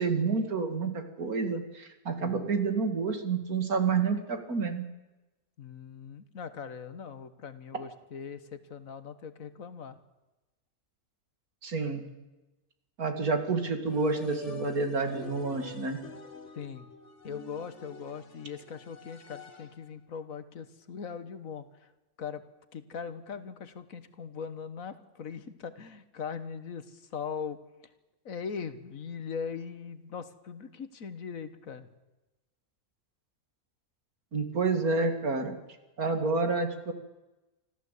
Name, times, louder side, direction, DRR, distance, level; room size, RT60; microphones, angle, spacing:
voice 1, 0.0-4.8 11.6-12.0 13.0-16.0 34.3-35.5 36.0-36.9, right 4 dB, 90° right, 7 dB, 2.7 m, -29 dB
voice 2, 2.2-2.5 5.6-10.0 16.5-16.9 17.2-21.7 22.2-22.4 22.7-27.6 28.2-31.9, left 6 dB, 70° left, 12 dB, 1.7 m, -40 dB
sound 1, 13.8-19.9, left 4 dB, 55° left, 2.0 m, -47 dB
25.5 x 14.5 x 8.3 m, 1.1 s
omnidirectional pair, 1.5 m